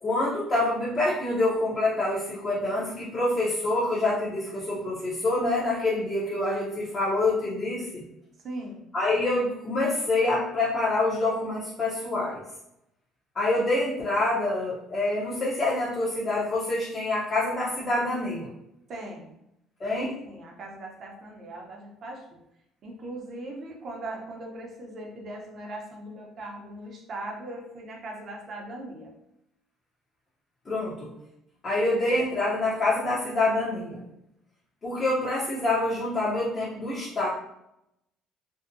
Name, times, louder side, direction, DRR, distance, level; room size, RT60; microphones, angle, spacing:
voice 1, 0.0-8.0 8.9-12.4 13.4-18.5 19.8-20.1 30.7-31.1 31.6-34.0 34.8-37.3, left 2 dB, 30° left, -7 dB, 0.6 m, -26 dB
voice 2, 8.4-8.8 18.9-19.3 19.9-22.2 22.8-29.2, right 1 dB, 45° right, 0 dB, 0.6 m, -39 dB
2.6 x 2.1 x 2.5 m, 0.81 s
cardioid pair, 110°, 0 cm